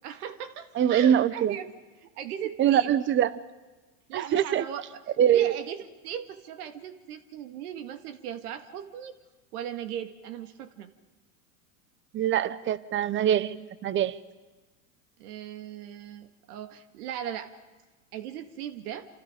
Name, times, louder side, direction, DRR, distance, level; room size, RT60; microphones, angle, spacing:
voice 1, 0.0-1.7 2.0-2.9 4.1-9.2 9.5-10.9 15.2-17.5 18.1-19.1, right 9 dB, 70° right, 8 dB, 2.2 m, -38 dB
voice 2, 0.8-1.5 2.6-3.4 4.1-4.6 5.2-5.6 12.1-14.2, right 10 dB, 25° right, 18 dB, 0.8 m, -23 dB
28.0 x 27.0 x 5.2 m, 1.2 s
supercardioid pair, 120°, 47 cm